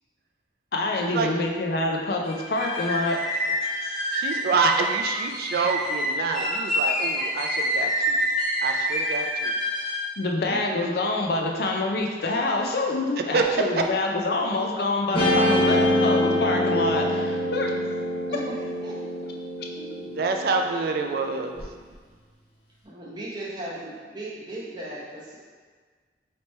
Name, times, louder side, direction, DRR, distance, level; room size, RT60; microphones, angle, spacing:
voice 1, 0.7-3.2 3.8-4.1 10.2-17.8, left 2 dB, 60° left, 1 dB, 0.5 m, -26 dB
sound 1, 2.3-10.1, equal, ahead, 0.9 m, -27 dB
voice 2, 4.1-8.2 8.6-9.6 13.3-13.4 20.2-21.5, right 4 dB, 55° right, 4 dB, 0.4 m, -26 dB
voice 3, 10.4-10.9 18.3-18.5 18.8-19.0 19.7-20.1 22.8-25.4, right 1 dB, 25° right, -6 dB, 0.8 m, -37 dB
Guitar, 15.1-21.6, left 1 dB, 30° left, 0.9 m, -25 dB
3.3 x 2.9 x 4.2 m, 1.5 s
head